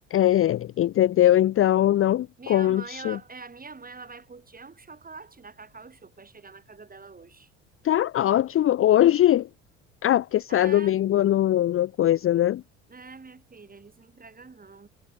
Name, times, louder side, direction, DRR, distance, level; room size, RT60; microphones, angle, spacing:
voice 1, 0.1-3.2 7.8-9.5 10.0-12.6, left 12 dB, 35° left, 0.7 m, -21 dB
voice 2, 2.4-7.5 10.5-11.0 12.9-14.9, right 4 dB, 20° right, 7.6 m, -44 dB
figure-of-eight pair, 60°, 38 cm